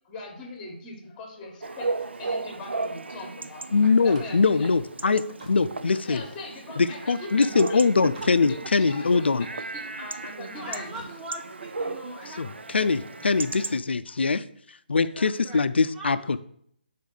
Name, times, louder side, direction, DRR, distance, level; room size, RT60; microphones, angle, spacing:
voice 1, 0.0-3.7 4.0-4.7 6.0-7.9 8.5-11.0 13.2-13.5 14.0-14.2, left 3 dB, 15° left, 2 dB, 1.3 m, -41 dB
Chatter / Bark / Livestock farm animals working animals, 1.6-13.8, right 3 dB, 85° right, 0.4 m, -36 dB
voice 2, 3.7-6.2 6.8-9.4 12.4-12.5 12.7-14.4 14.9-16.4, left 4 dB, 75° left, 13 dB, 0.4 m, -22 dB
Slam, 3.9-7.3 7.8-8.5 8.8-10.0 10.8-11.2, right 2 dB, 40° right, 1.2 m, -50 dB
voice 3, 10.6-13.3 15.0-16.4, right 1 dB, 10° right, -1 dB, 0.5 m, -42 dB
4.8 x 4.2 x 5.4 m, 0.68 s
figure-of-eight pair, 155°, 6 cm